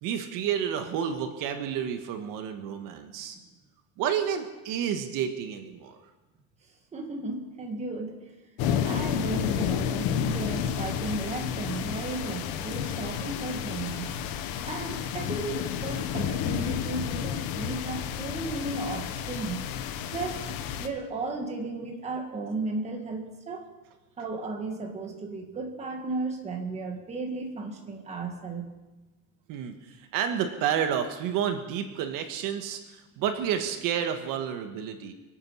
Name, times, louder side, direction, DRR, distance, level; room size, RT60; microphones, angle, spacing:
voice 1, 0.0-3.4 4.0-6.0 29.5-35.1, right 8 dB, 70° right, 6 dB, 1.5 m, -30 dB
voice 2, 6.9-8.1 8.8-14.2 14.7-19.7 20.1-20.5 20.8-23.7 24.2-28.8, right 3 dB, 20° right, 2 dB, 1.9 m, -34 dB
sound 1, 8.6-20.9, left 8 dB, 90° left, 1.3 m, -31 dB
25.0 x 9.0 x 5.6 m, 1.1 s
cardioid pair, 180°, 34 cm